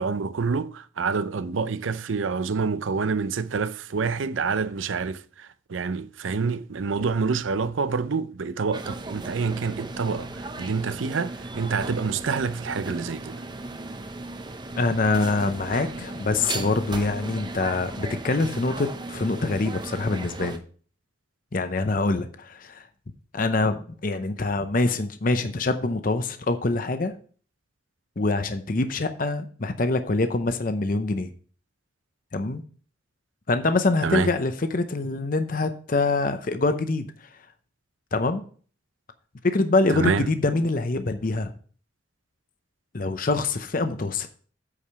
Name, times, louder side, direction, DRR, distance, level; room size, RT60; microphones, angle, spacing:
voice 1, 0.0-13.4 34.0-34.3 39.9-40.3, right 5 dB, 85° right, 0.5 m, -27 dB
sound 1, 8.7-20.6, right 2 dB, 25° right, 0.6 m, -36 dB
voice 2, 14.8-20.6 21.5-22.8 23.3-27.1 28.2-31.3 32.3-32.6 33.5-37.1 38.1-38.4 39.4-41.5 42.9-44.3, left 3 dB, 45° left, 0.7 m, -25 dB
8.6 x 4.9 x 5.6 m
head